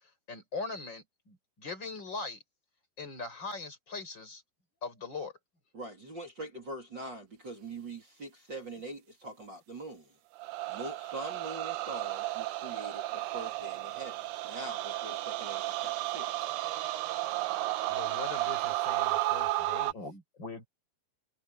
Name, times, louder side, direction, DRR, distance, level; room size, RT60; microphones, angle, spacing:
voice 1, 0.3-2.4 3.0-4.4 4.8-5.3 19.9-20.7, left 3 dB, 25° left, 6.6 m, -40 dB
voice 2, 5.7-10.1 10.7-16.5, right 2 dB, 30° right, 3.8 m, -43 dB
sound 1, 10.4-19.9, right 16 dB, 80° right, 3.1 m, -33 dB
voice 3, 17.9-20.0, left 7 dB, 65° left, 8.1 m, -44 dB
omnidirectional pair, 4.6 m